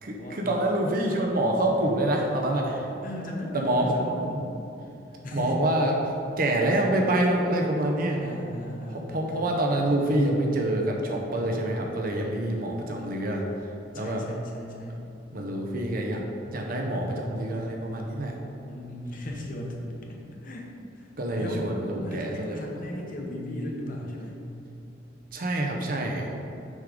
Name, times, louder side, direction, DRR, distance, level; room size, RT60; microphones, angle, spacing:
voice 1, 0.0-2.9 3.5-3.9 4.3-4.4 5.3-6.1 6.4-8.4 8.9-13.4 13.9-14.2 15.3-16.2 16.5-18.3 21.2-22.6 25.3-26.3, right 1 dB, 50° right, 1 dB, 0.7 m, -26 dB
voice 2, 3.0-4.5 5.1-5.6 8.2-9.4 13.9-15.1 18.7-21.1 21.4-21.7 22.0-24.5, left 1 dB, 45° left, 0 dB, 0.9 m, -37 dB
6.3 x 3.7 x 5.0 m, 2.8 s
head